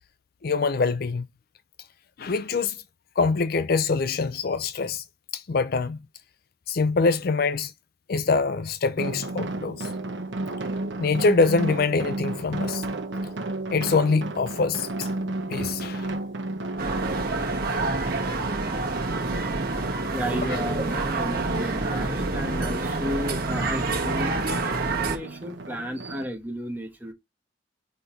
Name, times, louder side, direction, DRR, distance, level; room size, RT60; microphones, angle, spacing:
voice 1, 0.4-1.3 2.2-2.8 3.2-5.0 5.3-6.0 6.7-7.7 8.1-9.9 11.0-12.8 13.7-15.1 15.5-16.1, left 4 dB, 55° left, 0.5 m, -24 dB
sound 1, 9.0-26.2, right 2 dB, 80° right, 0.9 m, -33 dB
sound 2, 16.8-25.2, right 3 dB, 55° right, 1.4 m, -27 dB
voice 2, 20.1-27.1, equal, 10° right, 1.3 m, -33 dB
5.0 x 4.3 x 4.4 m
head